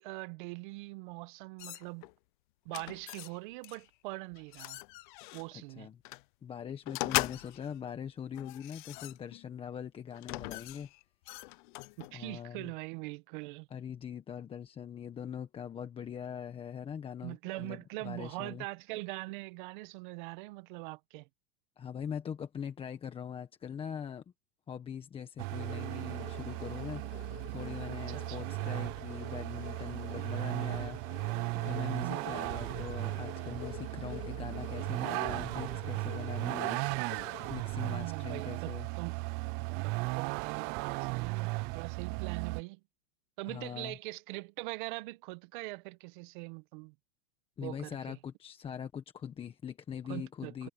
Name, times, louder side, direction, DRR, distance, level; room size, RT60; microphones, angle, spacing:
voice 1, 0.0-2.1 2.6-4.8 5.3-5.9 12.0-13.7 17.2-21.3 27.9-28.5 32.0-32.5 37.8-39.2 39.8-42.8 43.4-46.9 47.6-48.2 50.1-50.7, right 23 dB, 55° right, 1.3 m, -42 dB
sound 1, 1.6-2.1 2.7-3.4 3.6-3.9 4.3-5.5 6.1-6.2 6.9-7.8 8.3-9.5 10.1-12.2, left 22 dB, 55° left, 0.6 m, -39 dB
voice 2, 5.5-6.0 6.4-10.9 12.1-12.7 13.7-18.6 21.8-24.2 24.7-27.0 27.5-31.0 31.5-36.8 37.5-38.9 43.5-44.0 47.6-50.7, left 8 dB, 20° left, 1.3 m, -42 dB
Vehicle, 25.4-42.6, right 26 dB, 35° right, 0.4 m, -36 dB
sound 2, 25.5-38.7, left 17 dB, 75° left, 3.3 m, -49 dB
supercardioid pair, 150°, 30 cm